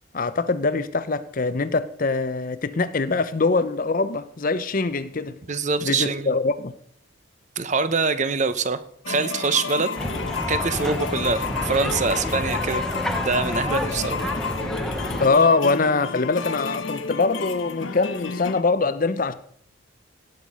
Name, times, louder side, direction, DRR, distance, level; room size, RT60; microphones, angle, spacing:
voice 1, 0.1-5.4 5.8-6.7 15.2-19.3, left 3 dB, 40° left, 0.6 m, -23 dB
voice 2, 5.5-6.3 7.6-8.8 9.1-9.9 10.5-12.8 13.2-14.2, right 4 dB, 35° right, 0.7 m, -24 dB
sound 1, 9.0-18.6, left 5 dB, 70° left, 0.9 m, -31 dB
sound 2, 10.0-15.3, equal, ahead, 0.8 m, -29 dB
17.5 x 6.6 x 5.4 m
head